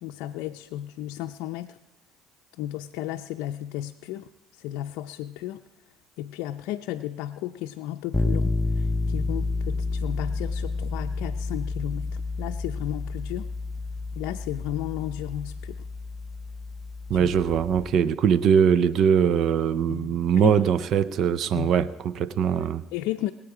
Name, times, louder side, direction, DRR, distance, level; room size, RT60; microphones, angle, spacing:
voice 1, 0.0-1.8 2.6-5.6 6.2-13.5 14.2-15.9 17.1-17.3 19.9-20.6 21.5-21.7 22.9-23.3, left 13 dB, 75° left, 0.5 m, -34 dB
sound 1, 8.1-17.9, left 3 dB, 15° left, 0.6 m, -30 dB
voice 2, 17.1-22.8, right 8 dB, 60° right, 0.6 m, -22 dB
22.5 x 8.7 x 4.9 m
hypercardioid pair, 65°, 0 cm